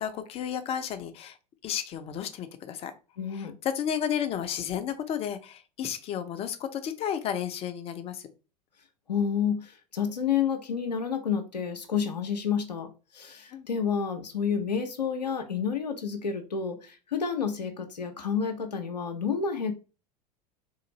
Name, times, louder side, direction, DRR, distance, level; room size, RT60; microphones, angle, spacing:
voice 1, 0.0-1.4 1.6-2.9 3.3-8.3 13.5-13.7, left 9 dB, 30° left, 8 dB, 0.6 m, -32 dB
voice 2, 3.2-3.5 9.1-19.7, left 7 dB, 80° left, 4 dB, 0.6 m, -30 dB
3.8 x 2.5 x 3.0 m, 0.32 s
figure-of-eight pair, 80°, 21 cm